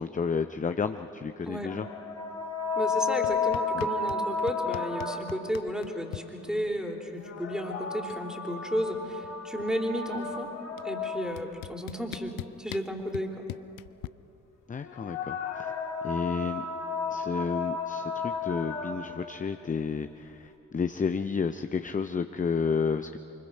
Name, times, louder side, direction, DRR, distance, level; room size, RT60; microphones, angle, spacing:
voice 1, 0.0-1.9 3.7-3.9 14.7-15.7 16.0-16.6 17.1-23.2, left 5 dB, 20° left, 9 dB, 0.7 m, -31 dB
sound 1, 1.6-5.6 7.1-11.6 14.8-19.3, left 4 dB, 45° left, 2.3 m, -33 dB
voice 2, 2.7-10.5 10.8-13.4, equal, ahead, 2 dB, 3.4 m, -33 dB
sound 2, 3.2-4.2 4.5-6.2 7.5-7.6 7.8-8.3 8.5-9.9 10.8-10.9 11.4-14.1, left 18 dB, 65° left, 0.5 m, -41 dB
24.5 x 21.5 x 5.5 m, 2.9 s
hypercardioid pair, 40°, 36 cm